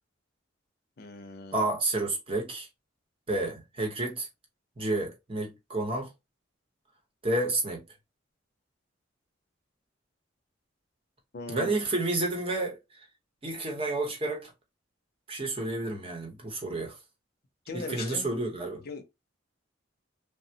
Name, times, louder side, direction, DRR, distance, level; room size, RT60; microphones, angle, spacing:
voice 1, 1.0-1.6 11.3-11.8 17.7-18.3 18.9-19.0, left 3 dB, 55° left, 0.6 m, -39 dB
voice 2, 1.5-2.7 3.3-4.3 4.8-6.1 7.2-7.8 11.5-12.8 13.4-14.5 15.3-17.0 17.7-18.8, right 2 dB, 30° right, 0.8 m, -30 dB
3.3 x 2.0 x 2.7 m
head